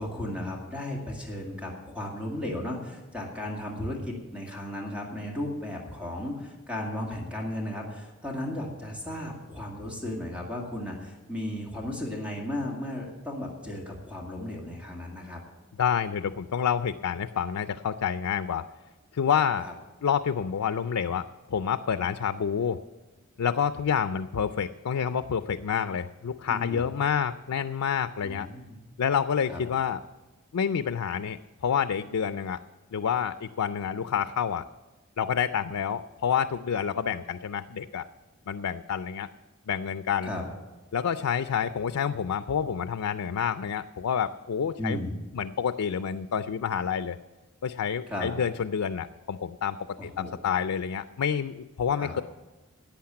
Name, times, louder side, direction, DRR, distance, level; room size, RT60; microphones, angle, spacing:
voice 1, 0.0-15.4 19.6-19.7 26.5-26.9 28.2-28.8 29.5-29.6 40.2-40.4 44.8-45.2 48.1-48.3 50.0-50.4 52.0-52.1, left 1 dB, 5° right, -1 dB, 2.1 m, -35 dB
voice 2, 15.8-18.7 19.1-19.7 20.0-22.8 23.4-28.5 29.0-30.0 30.5-32.6 32.9-34.7 35.2-38.0 38.5-39.3 39.7-40.3 40.9-45.0 45.3-47.2 47.6-49.8 50.0-52.2, left 7 dB, 90° left, 12 dB, 0.4 m, -28 dB
11.5 x 8.6 x 8.6 m, 1.2 s
head